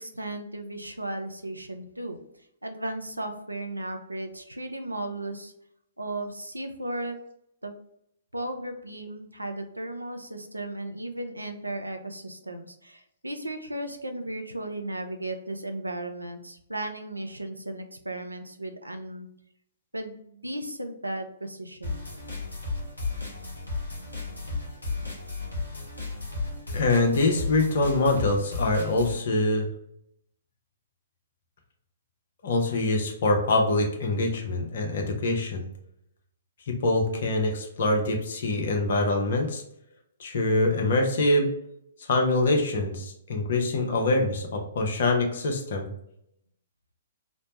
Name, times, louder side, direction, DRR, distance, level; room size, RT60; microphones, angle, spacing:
voice 1, 0.0-2.2 2.6-5.5 6.0-7.2 7.6-7.7 8.3-19.3 19.9-22.1, right 1 dB, 90° right, 6 dB, 0.4 m, -35 dB
sound 1, 21.8-29.2, left 3 dB, 80° left, 1.1 m, -34 dB
voice 2, 26.7-29.7 32.4-35.6 36.7-39.6 40.2-41.5 42.1-45.9, left 2 dB, 55° left, 2 dB, 0.7 m, -24 dB
3.1 x 2.0 x 2.8 m, 0.77 s
figure-of-eight pair, 120°, 0 cm